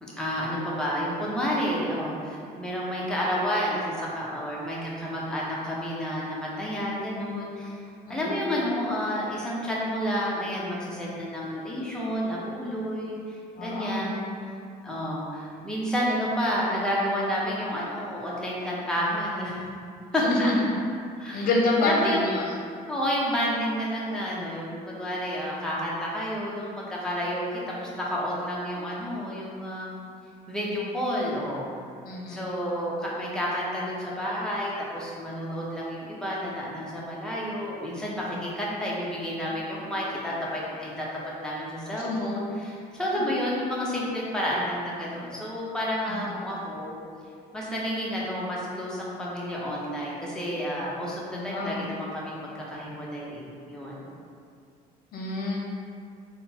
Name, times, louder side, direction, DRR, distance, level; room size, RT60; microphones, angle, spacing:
voice 1, 0.0-7.7 8.1-14.5 14.8-19.6 20.1-20.8 21.2-21.5 21.8-22.3 22.9-29.9 30.5-31.7 32.3-41.1 41.4-46.9 47.5-54.0, equal, 5° left, -6 dB, 0.9 m, -30 dB
voice 2, 13.6-14.0 20.2-20.5 21.3-22.4 32.0-32.4 42.1-42.3 46.1-46.2 51.3-51.8 55.1-55.6, left 2 dB, 60° left, -2 dB, 0.8 m, -27 dB
3.8 x 2.2 x 4.3 m, 2.3 s
cardioid pair, 110°, 17 cm